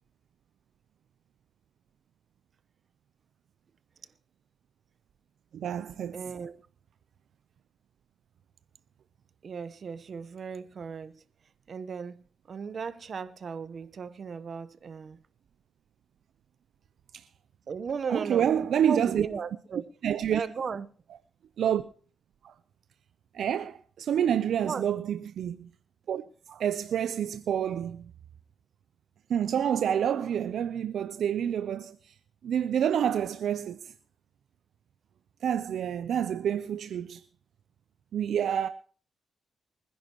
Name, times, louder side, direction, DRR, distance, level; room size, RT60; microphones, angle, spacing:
voice 1, 5.5-6.2 17.1-17.2 18.1-19.3 20.0-20.4 21.6-21.8 22.4-22.5 23.3-25.7 26.1-26.2 26.5-28.1 29.3-32.1 32.4-33.9 35.4-37.2 38.1-38.7, right 9 dB, 75° right, 0.6 m, -28 dB
voice 2, 6.1-6.6 9.4-11.2 11.7-15.2 17.7-18.6 18.9-19.9 20.3-20.9 24.6-24.9, right 6 dB, 55° right, 1.0 m, -36 dB
24.5 x 10.5 x 3.0 m
cardioid pair, 80°, 0 cm